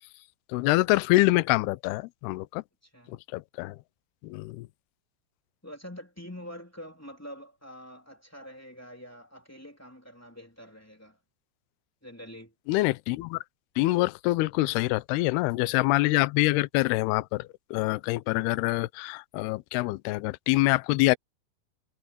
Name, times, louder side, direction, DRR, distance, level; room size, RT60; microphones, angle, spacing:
voice 1, 0.5-2.6 3.1-3.8 4.2-4.7 12.7-13.4 13.8-21.2, left 20 dB, 85° left, 2.3 m, -25 dB
voice 2, 2.8-3.2 5.6-11.2 12.0-12.5, equal, 5° left, 2.1 m, -45 dB
omnidirectional pair, 5.4 m